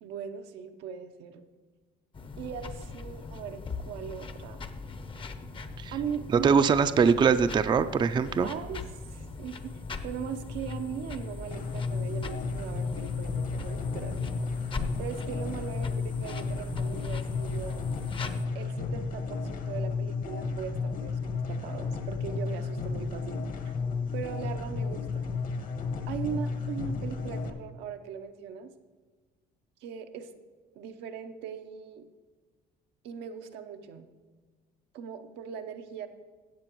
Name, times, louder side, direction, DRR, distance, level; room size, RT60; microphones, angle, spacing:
voice 1, 0.0-1.5 2.4-4.6 5.9-6.6 8.4-8.8 9.1-14.4 15.0-17.8 18.5-23.7 24.1-25.3 26.1-28.7 29.8-30.4 30.7-32.1 33.0-34.1 34.9-36.1, right 8 dB, 85° right, 6 dB, 0.8 m, -39 dB
sound 1, 2.1-18.5, left 4 dB, 30° left, 0.7 m, -40 dB
voice 2, 6.4-8.5, right 6 dB, 25° right, 11 dB, 0.4 m, -22 dB
sound 2, 11.5-27.5, left 4 dB, 50° left, 1.1 m, -33 dB
15.5 x 7.6 x 3.0 m, 1.4 s
cardioid pair, 110°, 17 cm